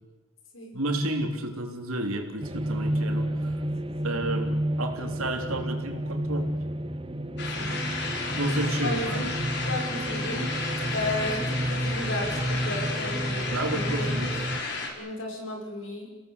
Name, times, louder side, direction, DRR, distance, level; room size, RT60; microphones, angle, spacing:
voice 1, 0.7-3.5 4.0-6.5 8.4-9.4 13.5-14.3, right 1 dB, 80° right, 4 dB, 3.6 m, -31 dB
sound 1, 2.4-14.6, right 1 dB, 25° right, 0.9 m, -30 dB
voice 2, 3.8-4.2 7.6-7.8 8.8-9.2 9.6-10.5 10.9-14.2 14.9-16.1, left 1 dB, 65° left, 1 dB, 6.5 m, -34 dB
sound 2, 7.4-14.9, left 3 dB, 50° left, 4.6 m, -33 dB
29.5 x 17.5 x 8.4 m, 1.2 s
head